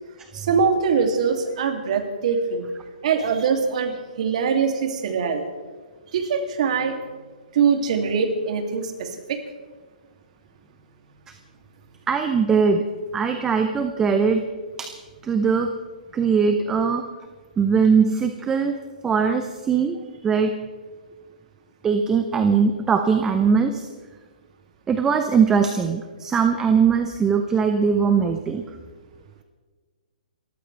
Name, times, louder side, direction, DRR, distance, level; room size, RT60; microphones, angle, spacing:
voice 1, 0.3-2.7 3.0-5.4 6.1-7.0 7.5-9.4, right 6 dB, 50° right, 4 dB, 2.8 m, -23 dB
voice 2, 12.1-12.8 13.1-14.4 14.8-14.9 15.2-15.7 16.1-17.0 17.6-18.7 19.0-20.0 20.2-20.5 21.8-23.9 24.9-28.7, right 6 dB, 10° right, 6 dB, 0.7 m, -20 dB
29.5 x 14.5 x 3.4 m, 1.4 s
hypercardioid pair, 160°, 5 cm